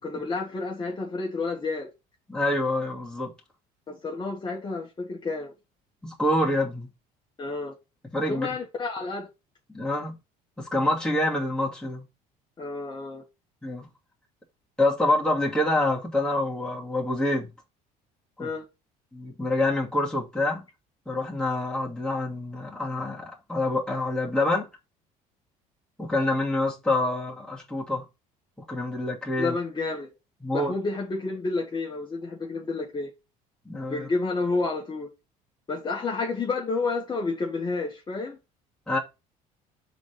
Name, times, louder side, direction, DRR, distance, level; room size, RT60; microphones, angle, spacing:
voice 1, 0.0-1.9 3.9-5.5 7.4-7.7 8.3-9.3 12.6-13.2 18.4-18.7 29.4-30.1 30.5-33.1 33.9-35.1 35.7-38.4, left 3 dB, 25° left, 1.8 m, -30 dB
voice 2, 2.3-3.3 6.0-6.9 8.1-8.6 9.7-10.2 10.6-12.1 13.6-13.9 14.8-17.5 18.4-18.5 19.1-20.6 21.1-24.7 26.0-28.1 28.6-29.6 30.4-30.7 33.6-34.1 38.9-39.0, left 1 dB, 5° left, 2.5 m, -26 dB
5.0 x 4.1 x 5.1 m
supercardioid pair, 100°, 16 cm